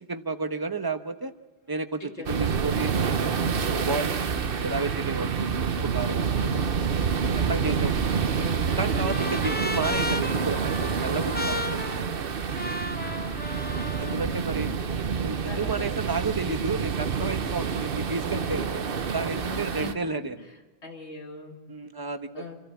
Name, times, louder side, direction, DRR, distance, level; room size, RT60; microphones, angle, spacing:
voice 1, 0.1-1.3 1.7-6.5 7.3-8.2 8.8-12.0 14.0-14.7 15.2-18.8 19.1-20.4 21.7-22.5, right 3 dB, 20° right, 8 dB, 1.0 m, -32 dB
voice 2, 2.0-2.4 6.4-6.8 8.3-8.7 9.9-10.1 14.3-14.8 15.5-15.9 18.3-18.6 19.5-20.0 20.8-21.6 22.3-22.5, left 4 dB, 85° left, 2 dB, 2.8 m, -41 dB
sound 1, 2.3-19.9, right 6 dB, 60° right, 1.1 m, -28 dB
Trumpet, 7.9-14.2, left 2 dB, 10° left, 0.6 m, -35 dB
27.5 x 13.5 x 8.4 m, 1.3 s
omnidirectional pair, 1.1 m